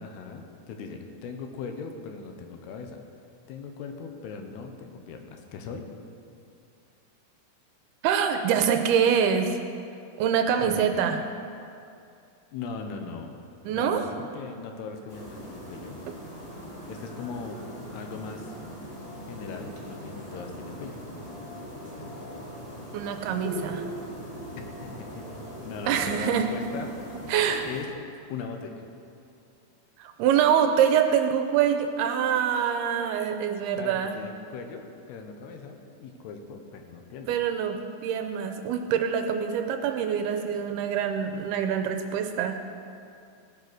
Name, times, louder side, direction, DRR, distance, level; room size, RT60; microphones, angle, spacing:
voice 1, 0.0-3.0 3.5-5.9 10.6-10.8 12.5-13.3 13.7-16.0 16.9-17.6 17.9-18.6 19.3-21.0 24.8-25.3 25.6-27.3 27.6-27.9 28.3-28.8 33.8-37.4, left 5 dB, 80° left, 4 dB, 3.0 m, -39 dB
voice 2, 8.0-9.6 10.2-11.2 13.7-14.0 22.9-23.9 25.9-26.5 27.3-27.7 30.0-34.2 37.3-42.6, right 8 dB, 80° right, 6 dB, 2.5 m, -25 dB
sound 1, 15.1-27.8, equal, 15° left, 1.6 m, -40 dB
17.5 x 8.1 x 6.2 m, 2.5 s
omnidirectional pair, 4.8 m